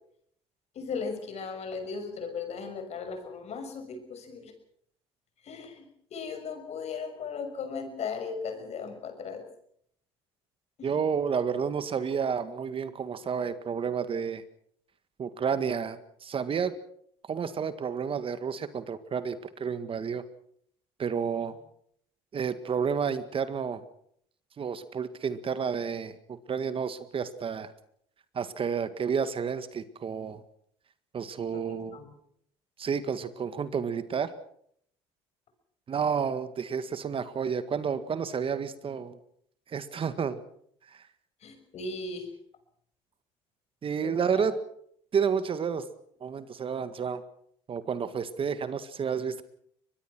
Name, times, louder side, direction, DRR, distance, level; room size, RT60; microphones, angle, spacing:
voice 1, 0.7-4.5 5.4-5.9 6.1-9.4 10.8-10.9 21.3-21.4 31.5-32.1 41.4-42.3 44.0-44.5, left 5 dB, 50° left, 8 dB, 6.1 m, -37 dB
voice 2, 10.8-14.4 15.2-16.7 17.2-20.3 21.0-21.6 22.3-23.8 24.6-27.7 28.3-30.4 31.1-32.0 32.8-34.3 35.9-39.2 39.7-40.4 40.9-41.1 43.8-44.6 45.1-45.8 46.2-47.2 47.7-49.4, right 6 dB, 40° right, 12 dB, 1.8 m, -30 dB
23.5 x 21.0 x 6.2 m, 0.67 s
hypercardioid pair, 70°, 14 cm